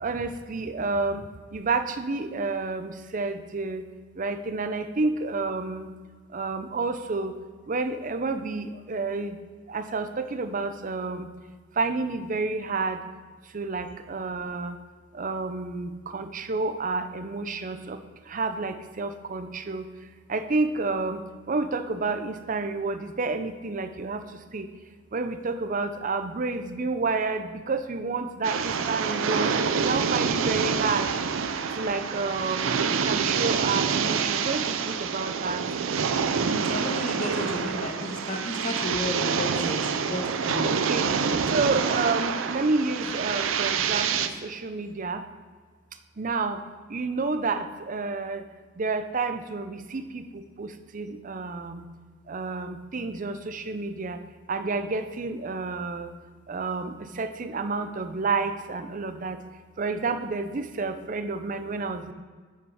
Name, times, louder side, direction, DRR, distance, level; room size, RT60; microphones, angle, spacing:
voice 1, 0.0-1.2 1.5-3.8 4.2-5.9 6.3-7.3 7.7-9.4 9.7-11.3 11.8-13.0 13.5-14.8 15.1-18.0 18.3-19.8 20.3-24.2 24.5-24.7 25.1-31.1 31.8-32.7 33.0-35.6 40.7-41.0 41.5-45.2 46.2-46.6 46.9-48.4 48.8-51.8 52.3-54.2 54.5-56.1 56.5-59.4 59.8-62.1, right 3 dB, 40° right, 9 dB, 0.6 m, -30 dB
sound 1, 28.4-44.3, right 6 dB, 90° right, 0.5 m, -27 dB
voice 2, 36.4-41.1, left 1 dB, 40° left, 2 dB, 1.2 m, -33 dB
9.5 x 5.6 x 4.9 m, 1.5 s
head